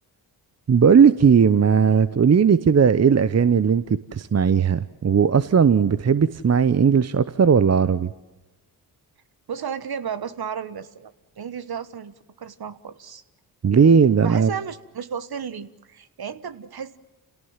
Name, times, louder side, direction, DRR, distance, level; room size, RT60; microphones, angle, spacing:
voice 1, 0.7-3.8 4.1-8.1 13.6-14.5, right 6 dB, 35° right, 0.9 m, -17 dB
voice 2, 9.5-13.2 14.2-17.0, right 7 dB, 50° right, 1.4 m, -33 dB
28.0 x 17.5 x 7.3 m
supercardioid pair, 45°, 47 cm